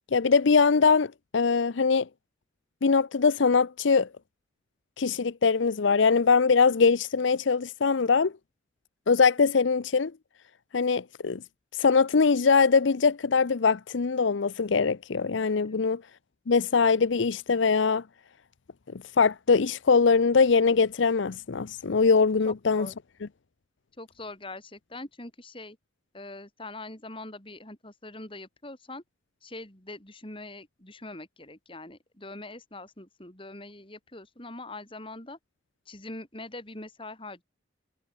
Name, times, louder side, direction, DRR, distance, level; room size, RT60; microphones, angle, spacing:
voice 1, 0.1-2.1 2.8-4.1 5.0-8.3 9.1-10.1 10.7-11.4 11.7-16.0 16.5-18.0 19.2-22.9, left 5 dB, 80° left, 0.6 m, -22 dB
voice 2, 22.4-23.0 24.0-25.8 26.1-29.0 29.4-35.4 35.9-37.4, left 2 dB, 25° left, 4.1 m, -43 dB
head